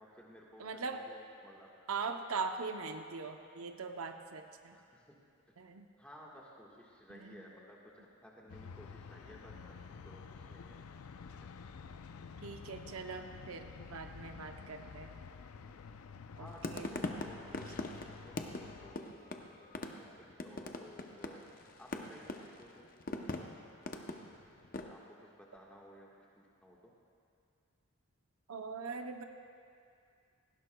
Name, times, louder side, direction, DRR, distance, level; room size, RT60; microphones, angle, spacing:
voice 1, 0.0-1.7 4.7-5.0 6.0-7.8 8.2-10.8 16.4-17.8 18.1-21.4 21.8-22.8 24.9-26.1 26.4-26.9, equal, 5° left, -4 dB, 1.4 m, -56 dB
voice 2, 0.6-1.0 1.9-4.8 5.6-5.9 7.1-7.5 12.4-15.1 16.4-16.9 28.5-29.2, right 4 dB, 75° right, 5 dB, 0.7 m, -41 dB
sound 1, 8.5-18.9, left 5 dB, 80° left, 0.5 m, -50 dB
sound 2, 16.5-24.9, left 2 dB, 40° left, 0.6 m, -42 dB
18.0 x 15.5 x 2.2 m, 2.4 s
head